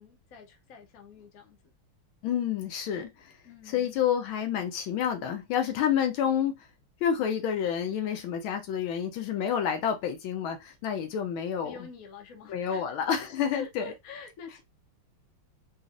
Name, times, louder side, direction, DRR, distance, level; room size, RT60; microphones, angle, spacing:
voice 1, 0.0-1.6 3.4-4.0 11.6-12.8 13.5-14.6, left 5 dB, 60° left, 0.9 m, -45 dB
voice 2, 2.2-3.3 3.7-6.7 7.0-11.7 12.5-13.8, left 8 dB, 80° left, 1.4 m, -29 dB
4.0 x 2.4 x 2.5 m
omnidirectional pair, 2.4 m